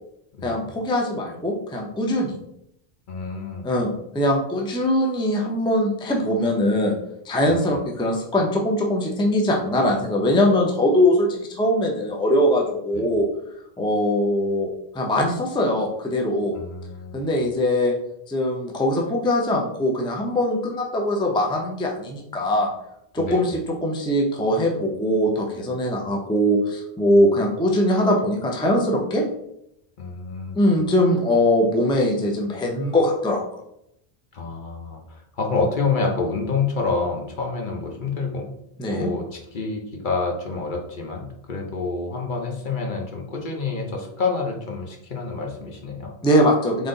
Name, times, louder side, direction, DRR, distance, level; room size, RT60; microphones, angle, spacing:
voice 1, 0.4-2.4 3.6-3.9 4.1-6.9 7.2-13.3 13.8-16.5 17.1-18.0 18.3-22.7 23.1-29.2 30.5-33.4 38.8-39.1 46.2-46.9, left 1 dB, 5° left, 0 dB, 0.5 m, -21 dB
voice 2, 3.1-3.7 7.4-7.7 12.9-13.1 16.5-17.3 23.2-23.5 30.0-30.6 34.3-38.5 38.9-46.1, left 4 dB, 55° left, 1 dB, 0.9 m, -28 dB
3.8 x 3.3 x 3.8 m, 0.77 s
omnidirectional pair, 1.1 m